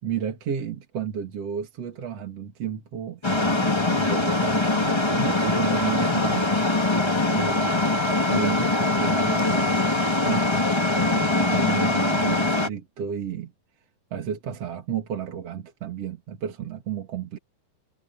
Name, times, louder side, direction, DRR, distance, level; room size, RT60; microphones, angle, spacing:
voice 1, 0.0-6.5 7.3-7.9 8.3-10.7 11.0-13.5 14.1-17.4, right 8 dB, 50° right, 3.0 m, -32 dB
sound 1, 3.2-12.7, left 2 dB, 25° left, 0.5 m, -22 dB
omnidirectional pair, 4.0 m